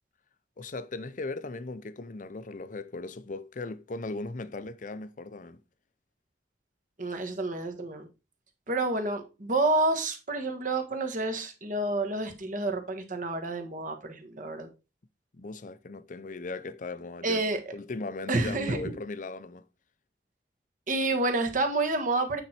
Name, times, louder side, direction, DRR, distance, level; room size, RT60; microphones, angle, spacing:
voice 1, 0.6-5.6 15.3-17.4 17.7-19.6, left 3 dB, 45° left, 0.6 m, -38 dB
voice 2, 7.0-8.1 8.7-14.7 17.2-17.6 18.3-19.0 20.9-22.4, right 2 dB, 50° right, 1.5 m, -29 dB
8.9 x 4.4 x 4.3 m
head